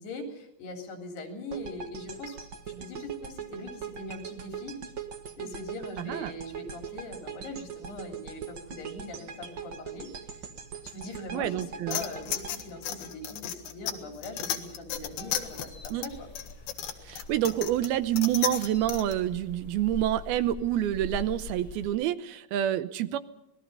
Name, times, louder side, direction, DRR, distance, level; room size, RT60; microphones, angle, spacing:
voice 1, 0.0-2.4 2.7-4.7 5.4-10.1 10.3-10.4 10.8-16.3, left 2 dB, 85° left, 5 dB, 5.5 m, -41 dB
sound 1, 1.5-13.7, right 7 dB, 50° right, 1.3 m, -41 dB
voice 2, 6.0-6.3 11.3-12.0 15.9-16.1 17.0-23.2, right 12 dB, 80° right, 13 dB, 2.7 m, -28 dB
sound 2, 11.9-19.1, left 10 dB, 70° left, 3.3 m, -35 dB
sound 3, 14.9-21.9, left 4 dB, 30° left, 2.5 m, -44 dB
26.5 x 20.0 x 5.5 m, 0.86 s
omnidirectional pair, 4.5 m